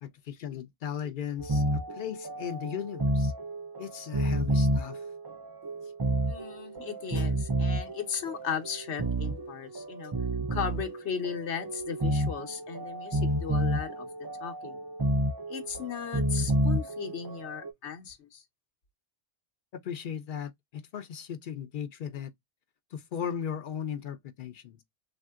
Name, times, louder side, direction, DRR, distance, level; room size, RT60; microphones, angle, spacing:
voice 1, 0.0-3.3 3.8-5.0 19.8-22.3 22.9-24.8, left 8 dB, 60° left, 0.6 m, -37 dB
sound 1, 1.4-17.7, right 1 dB, 40° right, 0.3 m, -30 dB
voice 2, 6.3-10.1 10.5-14.1 14.4-14.8 15.5-18.4, left 7 dB, 85° left, 1.1 m, -36 dB
3.4 x 2.5 x 2.3 m
omnidirectional pair, 1.1 m